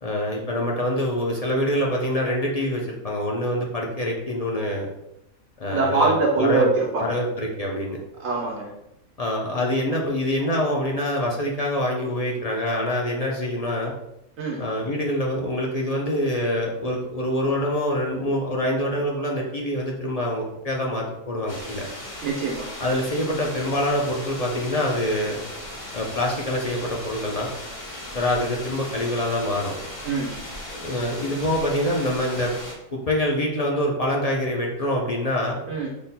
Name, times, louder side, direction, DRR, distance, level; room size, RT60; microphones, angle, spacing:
voice 1, 0.0-4.9 5.6-6.7 7.0-8.0 9.2-13.9 14.6-21.9 22.8-25.4 25.9-27.5 28.1-29.7 30.7-32.5 32.9-35.6, left 1 dB, 50° left, -1 dB, 0.4 m, -25 dB
voice 2, 5.7-7.1 8.2-8.7 14.4-14.6 22.2-22.7 30.0-30.4 35.7-35.9, right 3 dB, 65° right, -2 dB, 1.2 m, -23 dB
sound 1, 21.5-32.7, left 1 dB, 30° left, 0.8 m, -37 dB
5.5 x 4.1 x 2.2 m, 0.83 s
omnidirectional pair, 1.5 m